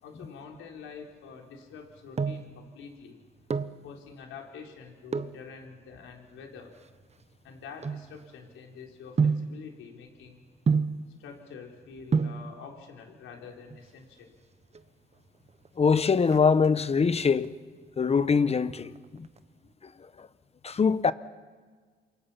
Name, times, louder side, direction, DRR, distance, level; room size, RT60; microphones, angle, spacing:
voice 1, 0.0-3.2 3.8-6.7 7.4-10.4 11.2-14.3, left 6 dB, 85° left, 4.4 m, -46 dB
sound 1, 1.7-2.6 3.3-3.8 5.1-5.4 6.2-8.6 9.2-9.6 10.7-11.1 11.8-11.9 12.1-12.5 13.6-14.1 14.4-14.5 14.7-14.9 15.3-15.7 16.0-17.0 17.4-17.9 18.2-19.4 19.7-19.8, right 5 dB, 35° right, 1.1 m, -29 dB
voice 2, 15.8-17.5 18.0-19.3 20.2-20.3 20.6-21.1, left 5 dB, 30° left, 1.1 m, -23 dB
28.0 x 24.0 x 5.9 m
cardioid pair, 90°, 20 cm